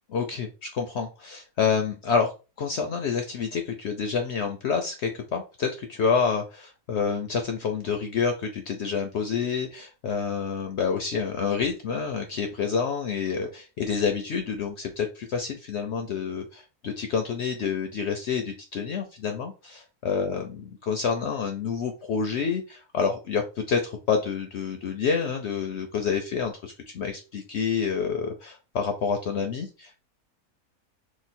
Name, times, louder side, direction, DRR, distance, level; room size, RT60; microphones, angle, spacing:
voice 1, 0.1-2.3 2.6-30.0, left 6 dB, 70° left, 5 dB, 0.6 m, -28 dB
3.0 x 2.1 x 4.1 m, 0.31 s
omnidirectional pair, 1.6 m